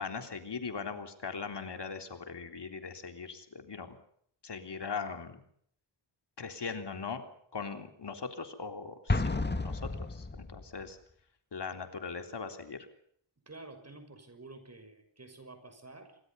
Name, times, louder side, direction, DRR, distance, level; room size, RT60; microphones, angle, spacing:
voice 1, 0.0-4.0 4.4-5.4 6.4-7.2 7.5-9.8 10.1-11.0 11.5-12.9, left 5 dB, 60° left, 6 dB, 3.7 m, -40 dB
Explosion, 9.1-10.8, left 3 dB, 25° left, 2.0 m, -32 dB
voice 2, 13.5-16.2, right 2 dB, 35° right, 9 dB, 6.2 m, -50 dB
27.5 x 24.5 x 5.6 m, 0.66 s
wide cardioid pair, 120°, 45 cm